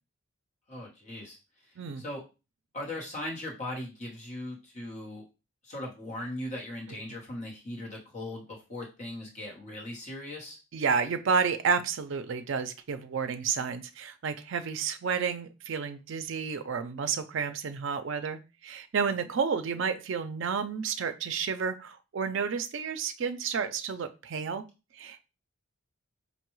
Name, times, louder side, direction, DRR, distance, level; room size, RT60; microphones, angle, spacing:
voice 1, 0.7-1.4 1.6-2.2 2.7-5.2 5.6-10.6, left 1 dB, 30° left, -3 dB, 1.0 m, -39 dB
voice 2, 10.7-24.6 24.9-25.2, right 6 dB, 55° right, 8 dB, 0.4 m, -31 dB
5.3 x 2.2 x 3.0 m, 0.30 s
head